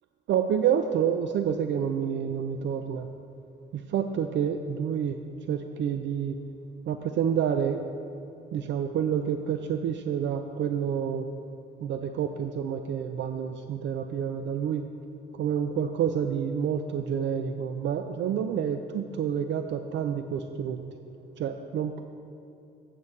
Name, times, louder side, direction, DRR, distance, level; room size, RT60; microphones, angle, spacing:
voice 1, 0.3-3.1 3.7-5.2 5.5-6.4 6.9-7.8 8.5-11.2 11.8-14.8 15.4-20.8 21.4-22.0, right 8 dB, 65° right, 7 dB, 0.4 m, -28 dB
8.6 x 7.3 x 4.0 m, 2.7 s
cardioid pair, 90°, 20 cm